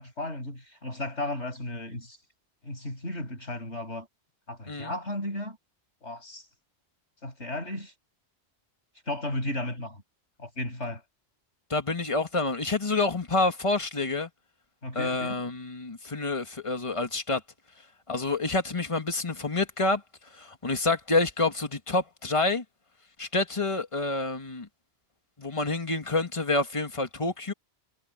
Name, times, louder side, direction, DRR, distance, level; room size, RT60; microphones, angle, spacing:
voice 1, 0.0-2.2 2.6-4.1 4.5-5.6 6.0-6.5 7.2-7.9 9.1-10.0 10.4-11.0 14.8-15.4, left 1 dB, 85° left, 7.5 m, -34 dB
voice 2, 11.7-14.3 14.9-17.4 18.1-20.0 20.3-22.6 23.2-24.7 25.4-27.5, left 3 dB, 30° left, 1.9 m, -28 dB
omnidirectional pair, 1.1 m